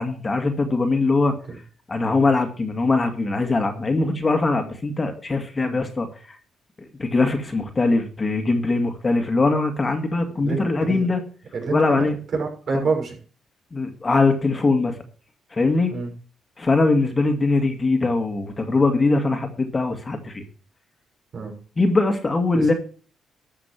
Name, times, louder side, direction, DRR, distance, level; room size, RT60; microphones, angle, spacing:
voice 1, 0.0-1.4 1.9-6.4 7.0-11.2 11.7-12.2 13.7-15.0 15.5-15.9 16.6-20.4 21.8-22.7, left 3 dB, 25° left, 5 dB, 2.1 m, -21 dB
voice 2, 10.3-11.1 11.5-12.0 12.3-13.2 15.9-16.1 21.3-21.6 22.5-22.8, right 4 dB, 55° right, 0 dB, 6.3 m, -27 dB
12.5 x 6.9 x 6.1 m, 0.40 s
cardioid pair, 90°, 0 cm